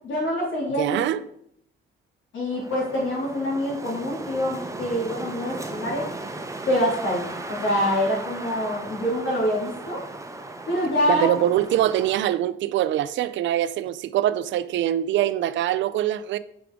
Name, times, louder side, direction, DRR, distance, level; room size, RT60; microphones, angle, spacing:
voice 1, 0.0-1.0 2.3-6.0 6.7-10.0 10.7-11.3, left 1 dB, 80° left, 2.7 m, -25 dB
voice 2, 0.8-1.2 11.1-16.4, right 12 dB, 70° right, 0.4 m, -23 dB
Wind, 2.5-12.4, right 2 dB, 15° right, 0.7 m, -37 dB
6.9 x 4.9 x 3.7 m
cardioid pair, 90°, 20 cm